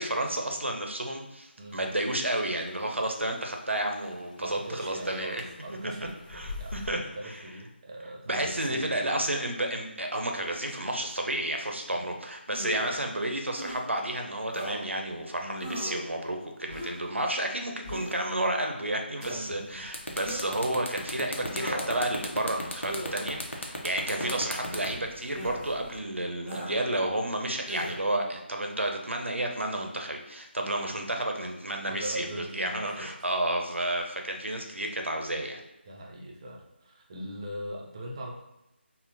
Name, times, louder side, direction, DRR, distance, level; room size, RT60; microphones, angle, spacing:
voice 1, 0.0-5.4 5.8-5.9 6.3-7.0 8.3-32.3 32.5-35.6, right 1 dB, 85° right, 3 dB, 0.5 m, -31 dB
sound 1, 1.7-6.9, left 3 dB, 45° left, 0.4 m, -46 dB
voice 2, 4.4-9.1 11.9-12.1 15.4-15.7 19.3-19.9 31.9-33.3 35.9-38.3, right 1 dB, 25° right, -1 dB, 0.4 m, -41 dB
sound 2, 12.5-13.0 13.5-13.8 14.5-14.8 15.6-16.0 16.7-17.1 17.8-18.2 19.2-19.4 20.2-20.6 21.5-22.0 22.9-23.2 24.2-24.4 25.4-25.6 26.5-26.8 27.7-28.0, equal, 5° left, 0.7 m, -37 dB
sound 3, 19.4-19.6 19.9-26.0, left 1 dB, 85° left, 0.7 m, -36 dB
3.6 x 2.0 x 2.6 m, 0.89 s
figure-of-eight pair, 160°, 6 cm